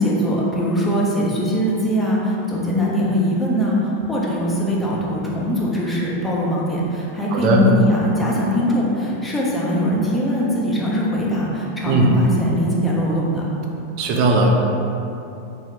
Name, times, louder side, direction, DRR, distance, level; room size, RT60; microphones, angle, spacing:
voice 1, 0.0-13.5, equal, 10° left, -5 dB, 0.6 m, -21 dB
voice 2, 7.3-7.6 11.9-12.1 14.0-14.5, right 3 dB, 40° right, 0 dB, 0.4 m, -17 dB
2.8 x 2.7 x 3.3 m, 2.8 s
figure-of-eight pair, 90°, 0 cm